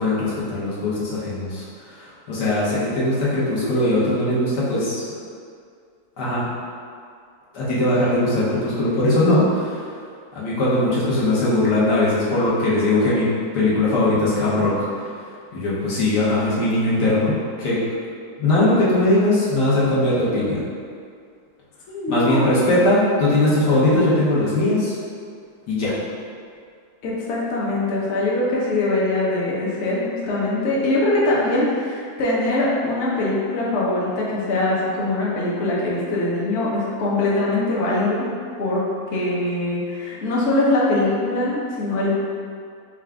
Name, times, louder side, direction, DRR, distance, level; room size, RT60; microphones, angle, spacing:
voice 1, 0.0-1.7 1.9-5.0 6.2-6.5 7.5-9.8 10.3-14.9 15.5-17.8 18.4-20.6 22.1-24.9 25.7-25.9, left 1 dB, 80° left, -8 dB, 1.6 m, -20 dB
voice 2, 21.9-22.9 27.0-38.3 38.6-38.8 39.1-42.1, left 2 dB, 55° left, -6 dB, 0.9 m, -22 dB
4.8 x 2.4 x 3.4 m, 2.2 s
omnidirectional pair, 1.8 m